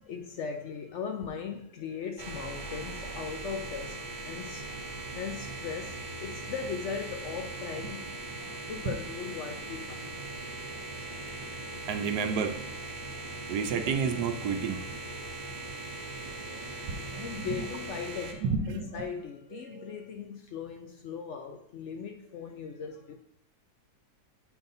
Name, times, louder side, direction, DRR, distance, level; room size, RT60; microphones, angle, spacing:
voice 1, 0.0-10.1 16.2-23.2, left 6 dB, 70° left, 0.7 m, -39 dB
sound 1, 2.2-18.3, right 2 dB, 40° right, 0.8 m, -40 dB
voice 2, 11.9-12.6 13.5-14.8 16.9-17.5 18.4-18.9, right 6 dB, 80° right, 1.2 m, -30 dB
8.0 x 5.4 x 2.6 m
omnidirectional pair, 1.7 m